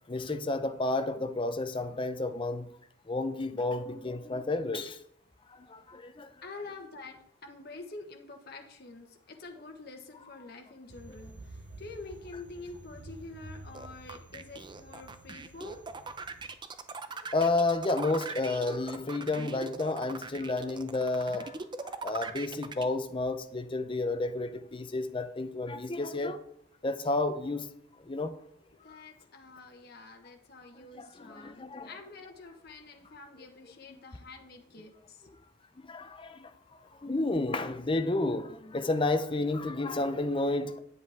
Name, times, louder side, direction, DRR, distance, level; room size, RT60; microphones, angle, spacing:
voice 1, 0.1-2.8 3.0-5.0 5.5-6.3 17.3-26.4 26.8-27.7 28.0-28.3 28.9-29.0 30.7-31.9 33.9-34.0 35.8-40.8, left 2 dB, 25° left, 0.6 m, -31 dB
voice 2, 6.4-15.8 28.8-35.3, left 3 dB, 55° left, 1.2 m, -47 dB
sound 1, 10.9-16.5, right 2 dB, 75° right, 0.8 m, -50 dB
sound 2, 13.7-22.8, right 4 dB, 25° right, 0.6 m, -40 dB
9.6 x 8.1 x 3.5 m
head